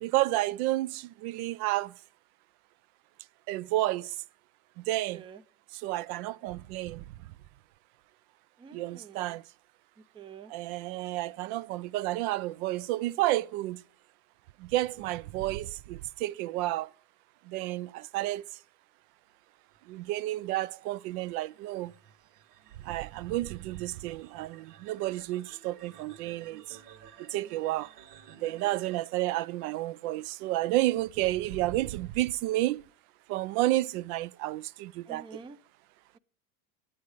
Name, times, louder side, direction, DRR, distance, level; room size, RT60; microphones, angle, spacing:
voice 1, 0.0-1.9 3.5-4.1 4.9-5.2 5.8-7.0 8.7-9.4 10.5-13.8 14.6-16.9 17.5-18.4 19.9-21.9 22.9-26.6 27.3-27.9 28.4-32.8 33.3-35.3, right 16 dB, 70° right, 0.5 m, -31 dB
voice 2, 8.6-9.2 10.1-10.5 35.1-35.6, right 6 dB, 10° right, 0.4 m, -47 dB
sound 1, 19.7-29.0, right 8 dB, 85° right, 1.0 m, -55 dB
9.0 x 8.4 x 4.8 m
hypercardioid pair, 95°, 46 cm